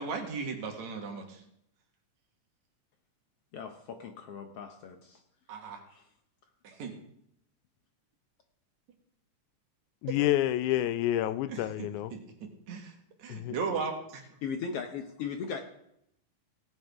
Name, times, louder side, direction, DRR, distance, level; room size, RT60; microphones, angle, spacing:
voice 1, 0.0-1.4 5.5-5.8 6.6-6.9 11.5-12.2 12.7-12.9 13.2-14.2, right 5 dB, 65° right, 3 dB, 2.8 m, -36 dB
voice 2, 3.5-5.2 5.9-6.0 14.4-15.6, left 6 dB, 70° left, 5 dB, 1.5 m, -38 dB
voice 3, 10.0-12.1 13.3-13.6, left 13 dB, 85° left, 14 dB, 2.0 m, -28 dB
18.0 x 9.2 x 3.5 m, 0.76 s
omnidirectional pair, 3.5 m